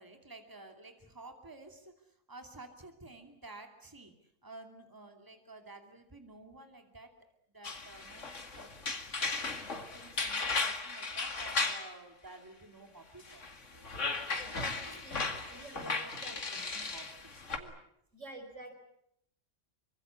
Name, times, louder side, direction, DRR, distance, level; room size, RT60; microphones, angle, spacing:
voice 1, 0.0-4.1 4.4-7.2 7.5-13.5 13.7-13.9 14.8-15.0 15.3-16.2 16.5-17.8, right 2 dB, 15° right, 5 dB, 2.7 m, -52 dB
sound 1, 7.6-11.9 13.2-17.6, left 4 dB, 80° left, 2.5 m, -36 dB
voice 2, 14.5-16.6 18.1-18.7, right 2 dB, 85° right, 5 dB, 5.6 m, -48 dB
25.0 x 24.5 x 8.4 m, 0.75 s
omnidirectional pair, 1.2 m